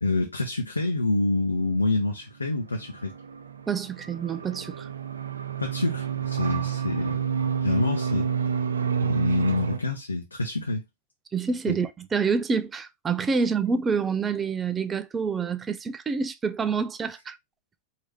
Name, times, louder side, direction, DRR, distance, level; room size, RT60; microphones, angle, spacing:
voice 1, 0.0-3.1 5.6-7.2 7.6-8.3 9.0-10.8 11.7-11.8, left 2 dB, 80° left, 0.7 m, -27 dB
sound 1, 2.7-9.8, right 7 dB, 70° right, 0.5 m, -29 dB
voice 2, 3.7-4.9 11.3-17.4, right 5 dB, 20° right, 0.5 m, -27 dB
4.7 x 2.8 x 3.3 m
figure-of-eight pair, 90°, 0 cm